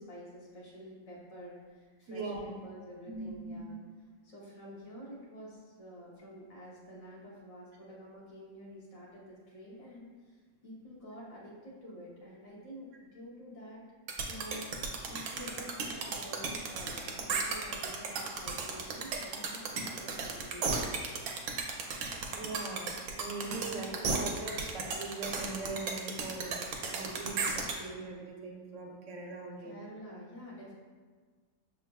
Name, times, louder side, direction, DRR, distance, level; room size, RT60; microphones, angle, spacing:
voice 1, 0.0-3.8 4.2-13.8 14.3-21.3 29.6-30.7, equal, 40° left, -6 dB, 0.5 m, -49 dB
voice 2, 2.1-2.6 3.1-3.7 15.5-15.7 22.3-26.6 26.9-29.7, right 3 dB, 60° right, 1 dB, 0.9 m, -41 dB
sound 1, 14.1-27.7, right 4 dB, 80° right, 1.2 m, -34 dB
6.3 x 3.6 x 2.2 m, 1.5 s
omnidirectional pair, 1.7 m